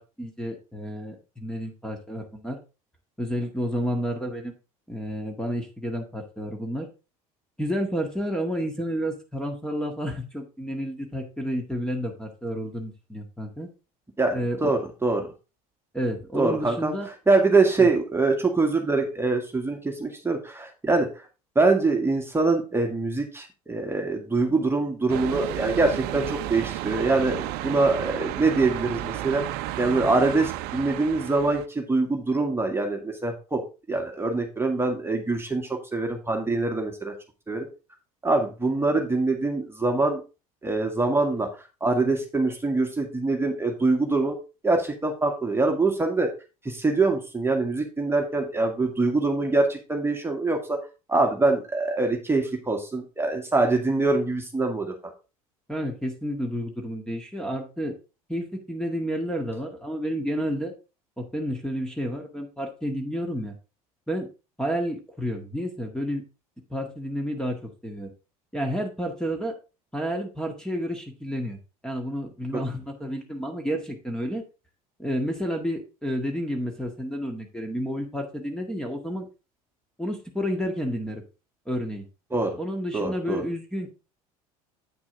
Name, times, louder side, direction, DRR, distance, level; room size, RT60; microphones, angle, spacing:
voice 1, 0.0-2.6 3.2-4.5 4.9-6.9 7.6-13.7 14.3-14.7 15.9-17.1 17.8-17.9 55.7-57.9 58.3-60.7 61.2-63.6 64.1-64.3 64.6-66.2 66.7-68.1 68.5-69.5 69.9-71.6 71.8-74.4 75.0-79.3 80.0-81.2 81.7-82.0 82.6-83.9, equal, 5° left, 3 dB, 1.8 m, -30 dB
voice 2, 14.2-15.2 16.3-16.9 17.3-21.1 21.6-29.4 29.8-33.6 33.9-37.1 37.5-37.7 38.2-40.2 40.6-41.5 41.8-44.4 44.6-46.3 46.6-50.8 51.1-54.9 72.5-72.6 82.3-82.5 82.9-83.4, right 3 dB, 15° right, 2 dB, 1.8 m, -24 dB
sound 1, 25.1-31.7, right 14 dB, 60° right, 0.7 m, -32 dB
9.0 x 6.0 x 3.8 m, 0.31 s
hypercardioid pair, 75°, 19 cm